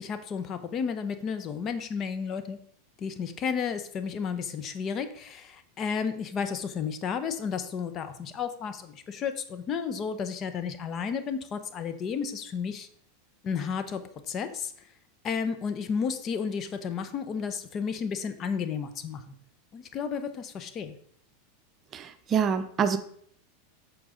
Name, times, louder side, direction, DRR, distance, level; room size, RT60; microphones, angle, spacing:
voice 1, 0.0-2.6 3.0-12.9 13.4-14.7 15.2-19.2 19.7-21.0, left 6 dB, 35° left, 10 dB, 1.0 m, -32 dB
voice 2, 21.9-23.0, right 7 dB, 35° right, 10 dB, 0.7 m, -26 dB
8.6 x 6.3 x 3.9 m, 0.62 s
hypercardioid pair, 100°, 0 cm